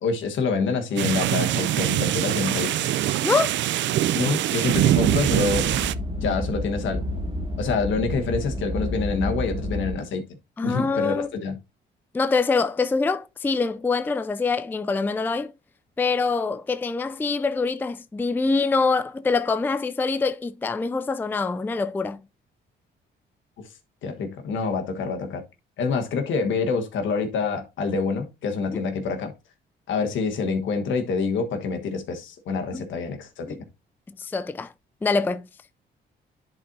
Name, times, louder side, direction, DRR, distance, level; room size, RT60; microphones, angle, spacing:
voice 1, 0.0-2.9 4.1-5.7 6.2-7.0 7.6-10.2 10.6-11.6 24.0-25.4 25.8-29.3 29.9-33.6, left 4 dB, 75° left, 1.4 m, -26 dB
sound 1, 1.0-5.9, right 13 dB, 65° right, 0.4 m, -23 dB
voice 2, 3.2-3.6 10.6-11.3 12.1-15.5 16.0-22.2 28.7-28.8 32.7-32.8 33.5-33.6 34.2-34.7 35.0-35.5, left 4 dB, 10° left, 0.3 m, -24 dB
sound 2, 4.7-9.9, equal, 25° right, 1.4 m, -30 dB
10.5 x 4.4 x 2.7 m
cardioid pair, 90°, 20 cm